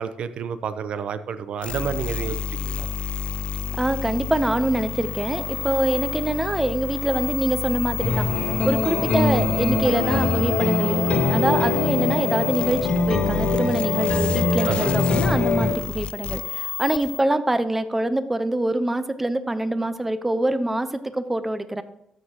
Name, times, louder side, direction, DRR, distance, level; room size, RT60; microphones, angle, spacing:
voice 1, 0.0-2.9 14.7-14.9, right 7 dB, 60° right, 12 dB, 0.6 m, -30 dB
sound 1, 1.6-17.2, left 7 dB, 55° left, 0.3 m, -30 dB
voice 2, 3.8-8.3 8.6-21.8, right 1 dB, 10° right, 12 dB, 0.6 m, -25 dB
sound 2, 8.0-15.7, left 3 dB, 75° left, 1.8 m, -23 dB
13.0 x 6.6 x 2.9 m, 0.83 s
cardioid pair, 140°, 2 cm